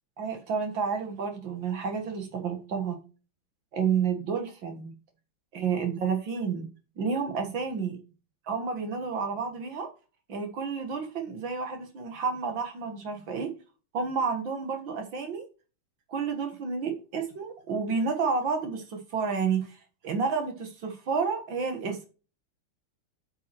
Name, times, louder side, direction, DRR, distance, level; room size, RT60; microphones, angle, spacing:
voice 1, 0.2-3.0 3.7-5.0 5.5-6.7 7.0-8.0 8.5-9.9 10.3-13.5 13.9-15.4 16.1-22.1, right 5 dB, 65° right, 2.3 m, -30 dB
8.3 x 6.4 x 4.4 m
omnidirectional pair, 2.3 m